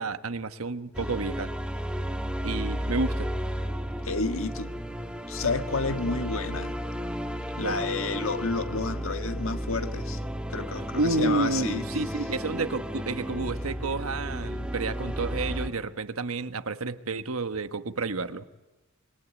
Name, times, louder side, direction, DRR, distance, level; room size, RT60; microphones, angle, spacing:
voice 1, 0.0-1.5 2.4-3.3 7.6-7.8 10.9-18.5, right 3 dB, 85° right, 11 dB, 1.2 m, -30 dB
sound 1, 0.9-15.7, equal, 5° right, 1.6 m, -33 dB
voice 2, 4.0-4.8 5.3-6.8 7.6-10.2 10.5-11.9, left 3 dB, 70° left, 7 dB, 1.7 m, -30 dB
26.5 x 22.5 x 8.5 m, 1.1 s
head